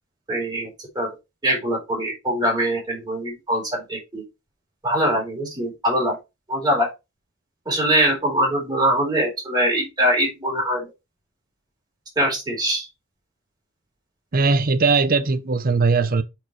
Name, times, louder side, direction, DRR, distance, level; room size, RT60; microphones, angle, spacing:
voice 1, 0.3-0.7 1.0-1.1 1.4-4.2 4.8-6.2 6.5-6.9 7.7-10.9 12.2-12.8, equal, 20° right, 3.7 m, -22 dB
voice 2, 14.3-16.2, right 4 dB, 45° right, 0.7 m, -19 dB
8.6 x 4.6 x 3.1 m
head